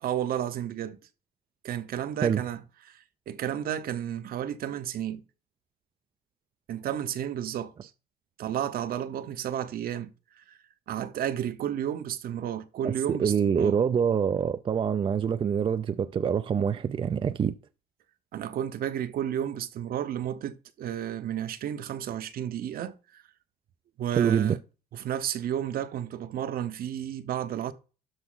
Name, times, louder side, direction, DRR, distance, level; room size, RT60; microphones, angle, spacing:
voice 1, 0.0-1.0 1.6-5.2 6.7-7.9 8.4-10.6 10.9-13.8 18.3-23.2 24.0-24.6 24.9-27.7, right 10 dB, 60° right, 1.0 m, -32 dB
voice 2, 12.8-17.5 24.1-24.6, right 7 dB, 30° right, 0.5 m, -25 dB
12.5 x 5.0 x 3.9 m
cardioid pair, 110°, 17 cm